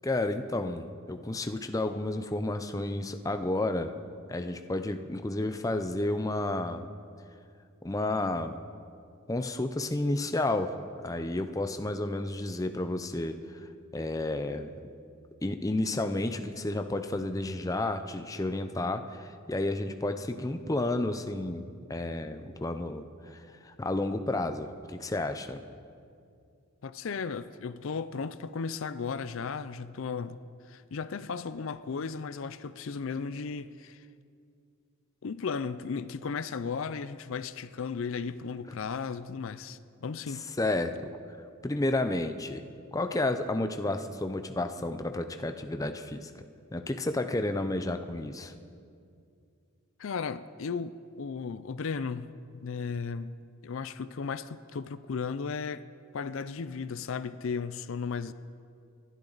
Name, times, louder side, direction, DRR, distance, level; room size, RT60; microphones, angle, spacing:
voice 1, 0.0-3.9 4.3-6.9 7.8-8.6 9.3-10.7 11.0-13.4 13.9-14.7 15.4-23.0 23.3-25.6 40.6-41.1 41.6-42.6 42.9-46.3 46.7-48.5, left 2 dB, 15° left, 0.6 m, -31 dB
voice 2, 26.8-34.1 35.2-40.5 50.0-53.3 53.6-55.8 56.1-58.3, left 5 dB, 65° left, 0.4 m, -35 dB
26.5 x 12.0 x 4.0 m
head